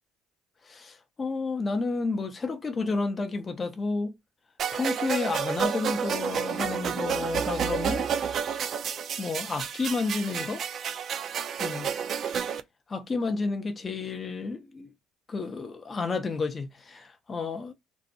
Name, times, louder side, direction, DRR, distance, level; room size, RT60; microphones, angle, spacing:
voice 1, 0.6-4.1 4.7-8.1 9.2-10.6 11.6-11.9 12.9-14.9 15.3-17.7, left 4 dB, 30° left, 0.5 m, -31 dB
sound 1, 4.6-12.6, right 7 dB, 55° right, 0.3 m, -30 dB
2.6 x 2.1 x 2.6 m
supercardioid pair, 75°, 0 cm